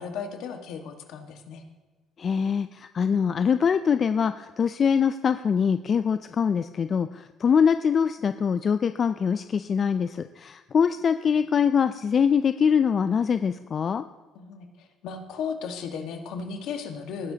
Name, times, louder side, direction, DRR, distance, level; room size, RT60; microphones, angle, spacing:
voice 1, 0.0-1.6 14.3-17.3, left 6 dB, 70° left, 5 dB, 1.6 m, -35 dB
voice 2, 2.2-14.0, left 7 dB, 45° left, 11 dB, 0.4 m, -23 dB
18.5 x 10.5 x 2.9 m, 1.3 s
supercardioid pair, 80°, 0 cm